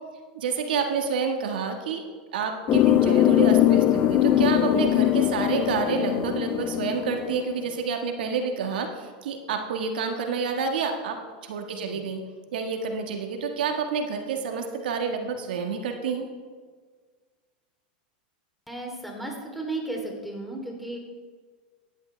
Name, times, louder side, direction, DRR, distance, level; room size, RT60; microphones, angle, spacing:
voice 1, 0.3-2.1 2.3-11.1 11.4-12.2 12.5-16.3, right 5 dB, 80° right, 4 dB, 1.6 m, -28 dB
sound 1, 2.7-7.6, left 12 dB, 40° left, 0.5 m, -21 dB
voice 2, 11.7-12.1 18.7-21.0, right 2 dB, ahead, 0 dB, 3.2 m, -34 dB
16.0 x 11.0 x 3.4 m, 1.5 s
hypercardioid pair, 110°, 5 cm